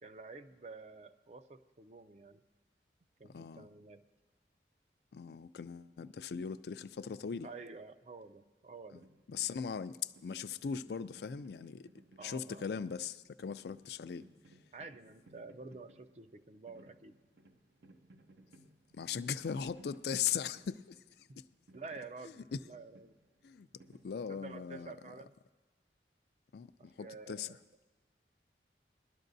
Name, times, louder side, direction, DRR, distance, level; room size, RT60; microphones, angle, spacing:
voice 1, 0.0-2.4 3.2-4.0 7.4-9.1 12.2-12.8 14.7-17.1 21.3-21.4 21.7-23.1 24.3-25.3 27.0-27.6, right 3 dB, 40° right, 0.4 m, -50 dB
voice 2, 3.3-3.7 5.1-7.5 9.3-11.9 12.2-14.2 18.9-21.4 22.5-22.6 23.4-24.9 26.5-27.6, left 7 dB, 65° left, 0.4 m, -39 dB
sound 1, 8.9-24.7, right 1 dB, 80° right, 0.7 m, -62 dB
20.5 x 12.0 x 2.7 m
head